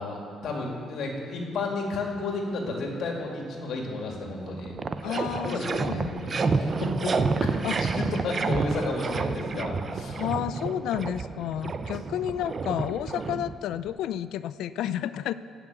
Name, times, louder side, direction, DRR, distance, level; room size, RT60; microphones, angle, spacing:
voice 1, 0.0-4.8 5.4-7.5 7.8-10.2, left 3 dB, 60° left, 0 dB, 2.0 m, -32 dB
sound 1, 4.1-4.2 4.5-13.9, right 4 dB, 30° right, 0.5 m, -30 dB
voice 2, 5.0-6.2 7.6-7.8 10.2-15.3, left 11 dB, 80° left, 14 dB, 0.4 m, -31 dB
16.5 x 6.0 x 8.1 m, 2.4 s
cardioid pair, 155°, 0 cm